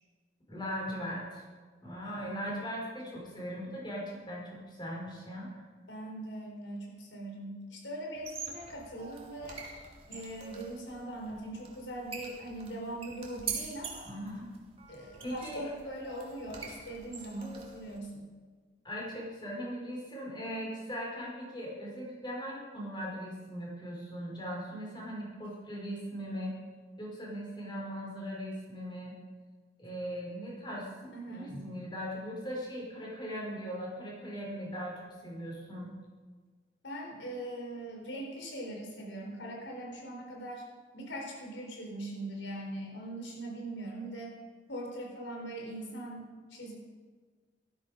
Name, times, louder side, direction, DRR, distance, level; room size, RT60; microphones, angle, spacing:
voice 1, 0.5-1.4 1.8-5.6 14.0-14.5 15.2-15.7 18.8-26.5 27.0-29.1 29.8-30.9 31.3-35.9, equal, 25° left, -3 dB, 5.3 m, -39 dB
voice 2, 2.0-2.6 5.9-9.6 10.1-14.1 14.9-18.3 31.1-31.7 36.8-40.6 40.9-44.3 44.7-46.8, right 1 dB, 90° left, 0 dB, 4.0 m, -41 dB
sound 1, 8.1-18.0, right 6 dB, 30° right, 2.5 m, -44 dB
18.5 x 14.0 x 5.2 m, 1.5 s
head